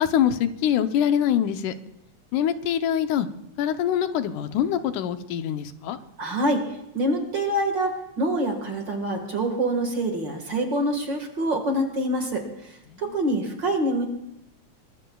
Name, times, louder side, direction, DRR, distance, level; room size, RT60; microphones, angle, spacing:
voice 1, 0.0-1.7 2.3-3.3 3.6-6.0 12.9-13.0, left 9 dB, 90° left, 9 dB, 2.3 m, -24 dB
voice 2, 6.2-6.6 6.9-12.4 13.0-14.1, right 1 dB, 45° right, 4 dB, 2.0 m, -25 dB
23.0 x 20.5 x 2.3 m, 0.81 s
omnidirectional pair, 3.5 m